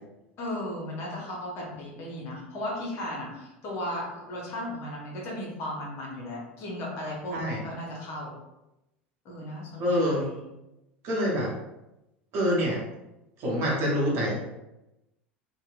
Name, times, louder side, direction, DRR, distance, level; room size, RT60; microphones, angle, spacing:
voice 1, 0.4-8.3 9.2-10.4, left 1 dB, 45° left, -3 dB, 0.8 m, -36 dB
voice 2, 9.8-10.2 11.0-11.5 12.3-12.8 13.4-14.4, equal, 45° right, -4 dB, 0.8 m, -26 dB
2.8 x 2.1 x 2.4 m, 0.94 s
figure-of-eight pair, 75°, 6 cm